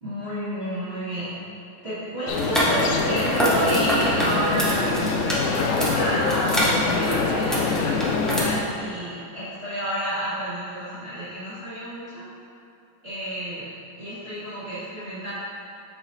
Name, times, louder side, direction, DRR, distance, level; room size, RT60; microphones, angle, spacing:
voice 1, 0.0-1.3 1.8-5.0 5.5-12.2 13.0-13.7 14.0-15.3, right 1 dB, 35° right, -14 dB, 1.8 m, -30 dB
sound 1, 2.3-8.6, left 4 dB, 90° left, 0.6 m, -25 dB
sound 2, 2.3-8.4, equal, ahead, 0.4 m, -26 dB
7.8 x 5.8 x 2.7 m, 2.8 s
omnidirectional pair, 2.0 m